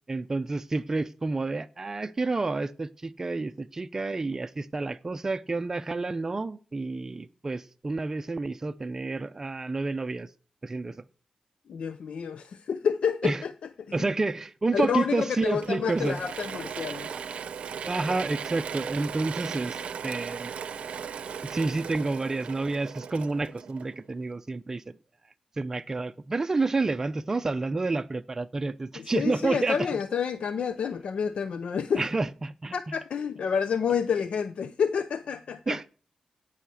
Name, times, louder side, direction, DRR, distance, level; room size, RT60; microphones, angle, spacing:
voice 1, 0.1-10.3 10.6-11.1 13.2-13.4 13.9-16.2 17.8-20.5 21.4-24.9 25.6-30.0 31.9-32.9 35.7-35.9, right 3 dB, 25° right, 0.6 m, -29 dB
voice 2, 11.7-13.5 13.9-14.1 14.7-17.1 29.0-32.0 32.7-35.8, left 7 dB, 70° left, 0.5 m, -29 dB
Mechanisms / Drill, 15.6-24.2, right 7 dB, 75° right, 0.6 m, -37 dB
16.5 x 5.7 x 7.6 m
wide cardioid pair, 175°, 2 cm